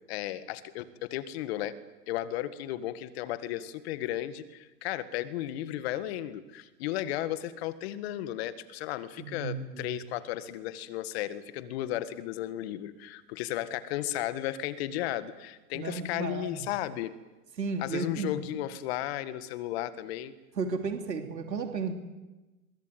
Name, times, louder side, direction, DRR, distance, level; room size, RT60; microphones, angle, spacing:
voice 1, 0.1-1.8 2.1-17.2 17.8-20.3, left 13 dB, 40° left, 14 dB, 1.8 m, -34 dB
voice 2, 9.2-9.9 15.7-16.7 17.6-18.3 20.6-21.9, right 4 dB, 85° right, 5 dB, 3.3 m, -33 dB
24.0 x 23.0 x 9.4 m, 1.1 s
hypercardioid pair, 135°, 49 cm